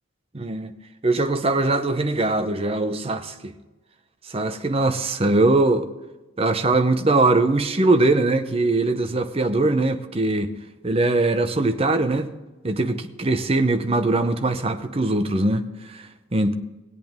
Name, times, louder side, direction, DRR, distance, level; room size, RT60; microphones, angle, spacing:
voice 1, 0.3-0.7 1.0-3.5 4.2-5.9 6.4-10.5 10.8-12.3 12.6-16.5, right 2 dB, 25° right, 0.7 m, -21 dB
19.5 x 8.4 x 3.6 m
head